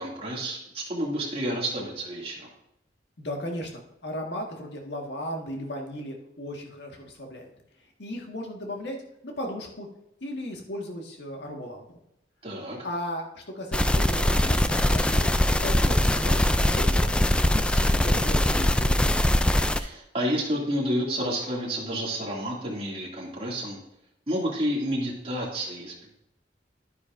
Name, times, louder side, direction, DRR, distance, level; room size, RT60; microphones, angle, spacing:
voice 1, 0.0-2.5 12.4-12.8 19.7-23.8 24.3-26.1, equal, 35° right, -3 dB, 2.4 m, -30 dB
voice 2, 3.2-7.5 8.0-9.0 9.2-9.9 10.2-11.8 12.8-17.1 17.5-19.2, equal, 75° left, 1 dB, 1.7 m, -36 dB
sound 1, 13.7-19.8, left 1 dB, 5° left, 0.3 m, -22 dB
10.5 x 9.8 x 2.6 m, 0.82 s
head